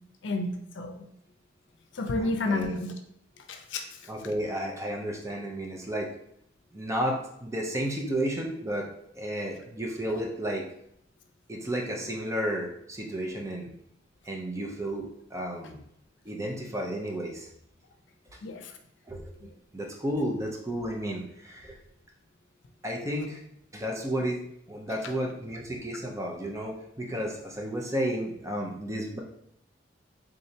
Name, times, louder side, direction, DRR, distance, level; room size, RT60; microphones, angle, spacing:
voice 1, 0.2-1.1 1.9-2.9 3.5-3.8 18.4-18.7 19.4-19.5, left 2 dB, 90° left, 5 dB, 0.5 m, -30 dB
voice 2, 2.2-2.7 4.1-6.1 6.7-8.9 9.2-10.6 11.5-13.7 14.2-15.8 16.3-17.5 19.1-19.3 19.7-21.8 22.8-23.4 23.7-29.2, equal, 15° right, 0 dB, 0.6 m, -32 dB
3.7 x 3.2 x 2.8 m, 0.72 s
head